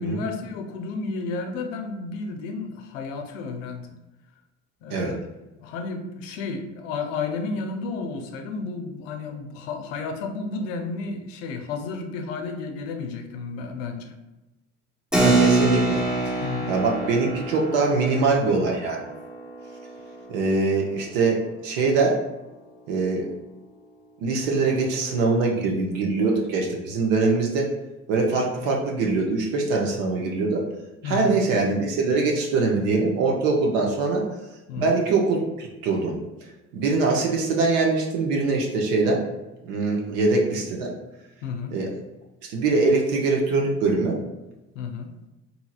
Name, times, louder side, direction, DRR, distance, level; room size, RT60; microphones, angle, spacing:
voice 1, 0.0-4.0 4.8-5.2 5.6-14.1 16.4-16.7 31.0-31.4 34.7-35.0 41.4-41.8 44.7-45.1, left 4 dB, 80° left, 5 dB, 0.5 m, -32 dB
Keyboard (musical), 15.1-21.1, right 2 dB, ahead, 0.6 m, -26 dB
voice 2, 15.2-16.0 16.3-19.1 20.3-22.2 22.9-23.3 24.2-27.7 28.1-30.6 31.0-34.2 34.8-36.2 36.7-39.2 39.6-40.9 41.7-41.9 42.4-44.2, right 3 dB, 75° right, 0 dB, 0.7 m, -23 dB
2.8 x 2.8 x 2.3 m, 1.0 s
hypercardioid pair, 60°, 37 cm